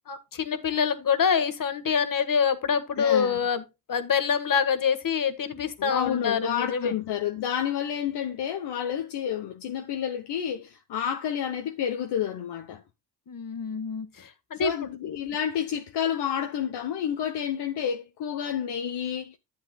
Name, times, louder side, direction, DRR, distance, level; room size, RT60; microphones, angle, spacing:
voice 1, 0.1-6.9 13.3-14.7, left 6 dB, 50° left, 1.6 m, -26 dB
voice 2, 3.0-3.4 5.8-12.8 14.6-19.4, left 9 dB, 70° left, 1.1 m, -30 dB
11.5 x 7.5 x 2.3 m
supercardioid pair, 60°, 42 cm